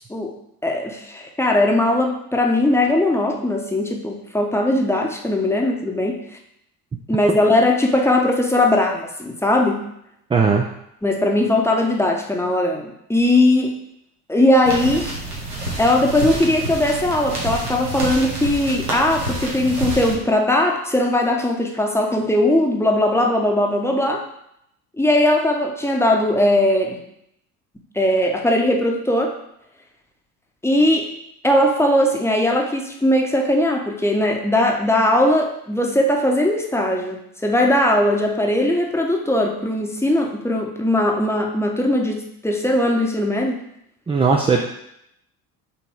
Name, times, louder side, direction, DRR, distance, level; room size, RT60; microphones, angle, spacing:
voice 1, 0.6-6.2 7.1-9.8 11.0-13.7 14.3-15.2 15.8-24.2 25.0-27.0 27.9-29.3 30.6-31.1 31.4-43.6, left 1 dB, 5° left, 1 dB, 1.0 m, -19 dB
voice 2, 10.3-10.7 44.1-44.6, right 4 dB, 10° right, 1 dB, 0.5 m, -17 dB
sound 1, 14.6-20.1, right 2 dB, 85° right, 1.5 m, -28 dB
5.8 x 4.0 x 4.6 m, 0.78 s
figure-of-eight pair, 60°, 46 cm